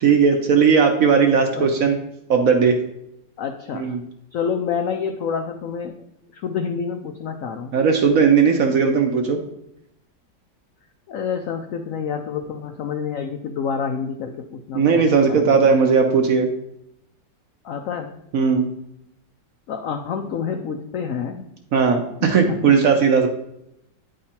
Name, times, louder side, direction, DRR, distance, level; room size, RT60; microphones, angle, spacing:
voice 1, 0.0-2.0 2.3-2.8 3.7-4.0 7.7-9.4 14.7-16.5 18.3-18.7 21.7-23.3, right 5 dB, 60° right, 4 dB, 1.0 m, -17 dB
voice 2, 1.5-1.9 3.4-4.0 4.3-5.9 6.3-7.7 11.1-15.0 15.3-15.7 17.6-18.1 19.7-21.4 22.2-22.4, left 6 dB, 80° left, 5 dB, 0.7 m, -28 dB
9.5 x 3.8 x 4.3 m, 0.80 s
omnidirectional pair, 2.0 m